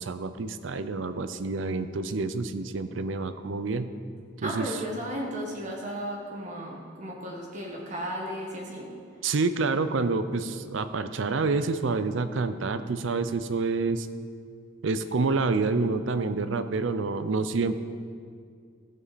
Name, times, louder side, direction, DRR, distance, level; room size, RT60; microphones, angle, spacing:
voice 1, 0.0-3.9 4.4-4.7 9.2-14.1 14.8-17.8, right 3 dB, 70° right, 11 dB, 0.5 m, -28 dB
voice 2, 4.4-8.9, equal, 40° right, -2 dB, 1.4 m, -35 dB
15.5 x 7.4 x 4.2 m, 2.2 s
head